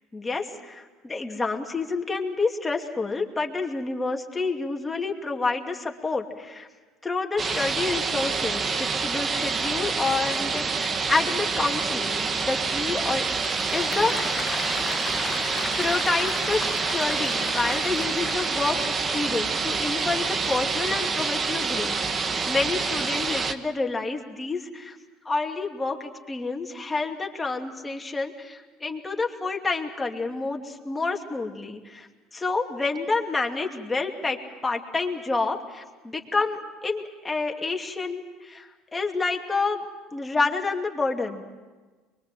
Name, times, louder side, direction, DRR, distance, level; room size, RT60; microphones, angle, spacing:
voice 1, 0.1-6.7 7.0-13.3 13.7-14.3 15.8-25.0 25.2-32.1 32.3-39.8 40.1-41.4, left 3 dB, 15° left, 2 dB, 2.6 m, -29 dB
sound 1, 7.4-23.5, right 4 dB, 35° right, 1.4 m, -27 dB
Applause / Crowd, 12.8-18.9, left 6 dB, 35° left, 1.0 m, -36 dB
23.5 x 22.5 x 7.7 m, 1.3 s
supercardioid pair, 85°, 0 cm